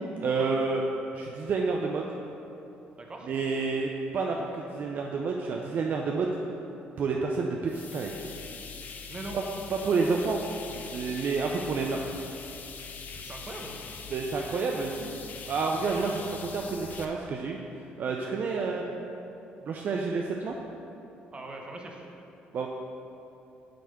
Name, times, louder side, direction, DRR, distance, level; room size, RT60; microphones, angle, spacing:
voice 1, 0.2-0.8 1.1-2.1 3.3-6.3 7.0-8.1 9.3-9.4 9.7-10.4 10.7-12.0 14.1-15.2 15.5-17.6 18.0-18.8 19.7-20.6 22.5-22.7, right 4 dB, 50° right, 1 dB, 0.5 m, -29 dB
voice 2, 3.0-3.3 9.1-9.4 13.2-13.8 18.5-18.7 21.3-22.0, right 2 dB, 25° right, 1 dB, 1.0 m, -41 dB
sound 1, 7.7-17.0, left 5 dB, 50° left, 0.6 m, -42 dB
7.7 x 3.5 x 6.5 m, 2.8 s
cardioid pair, 100°, 4 cm